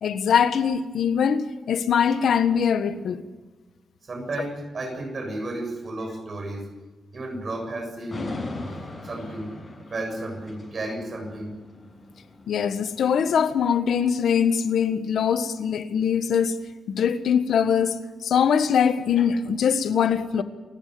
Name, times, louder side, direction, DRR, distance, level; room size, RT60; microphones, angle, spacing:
voice 1, 0.0-3.2 12.5-16.6 16.9-17.9 18.2-20.4, left 7 dB, 85° left, 1.5 m, -22 dB
voice 2, 4.0-6.7 7.1-8.8 9.0-9.5 9.9-11.5, right 2 dB, 35° right, 7.6 m, -33 dB
sound 1, 8.1-13.5, left 2 dB, 25° left, 7.4 m, -39 dB
29.0 x 15.5 x 9.5 m
wide cardioid pair, 180°, 0 cm